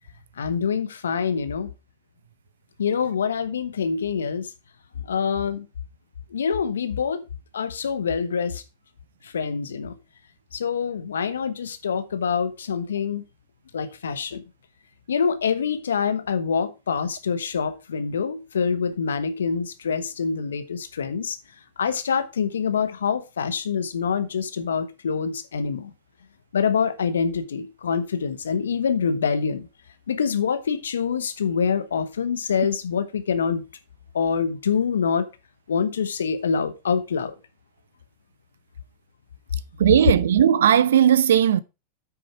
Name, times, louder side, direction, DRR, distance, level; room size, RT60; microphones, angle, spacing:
voice 1, 0.4-1.7 2.8-4.5 5.0-5.7 6.3-7.2 7.5-8.6 9.2-9.9 10.5-13.2 13.7-14.4 15.1-21.4 21.8-25.9 26.5-29.7 30.1-33.6 34.1-35.3 35.7-37.3, left 6 dB, 85° left, 1.2 m, -25 dB
voice 2, 39.8-41.6, right 9 dB, 75° right, 0.7 m, -17 dB
8.7 x 6.5 x 4.7 m
hypercardioid pair, 95°, 0 cm